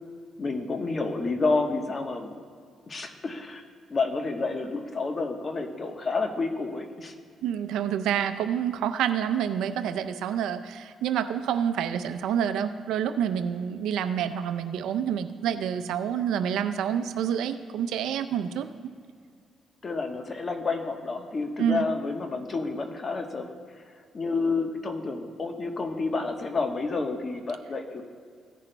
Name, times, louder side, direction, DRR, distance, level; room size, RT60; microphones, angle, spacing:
voice 1, 0.4-2.4 2.9-3.6 3.9-7.1 15.4-15.5 18.5-18.6 19.8-23.5 24.1-28.0, left 3 dB, 35° left, 5 dB, 1.1 m, -29 dB
voice 2, 7.4-18.7 21.6-21.9, right 9 dB, 85° right, 9 dB, 0.5 m, -28 dB
16.5 x 10.0 x 2.2 m, 2.1 s
cardioid pair, 90°, 0 cm